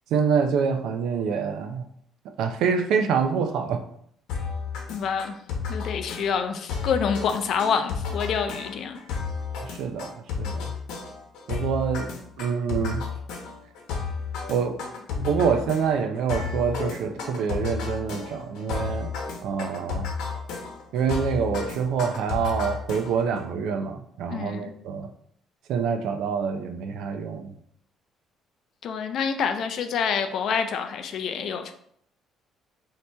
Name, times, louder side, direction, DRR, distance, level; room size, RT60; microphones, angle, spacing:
voice 1, 0.1-1.8 2.4-3.8 9.6-10.7 11.5-12.1 12.4-13.1 14.5-14.9 15.1-19.1 19.4-20.1 20.9-25.1 25.7-27.5, right 6 dB, 70° right, 6 dB, 0.5 m, -26 dB
sound 1, 4.3-23.4, left 5 dB, 90° left, 0.9 m, -33 dB
voice 2, 4.9-5.4 5.7-9.0 24.3-24.7 28.8-31.7, left 6 dB, 50° left, 8 dB, 0.4 m, -27 dB
4.3 x 2.8 x 3.3 m, 0.68 s
cardioid pair, 170°, 0 cm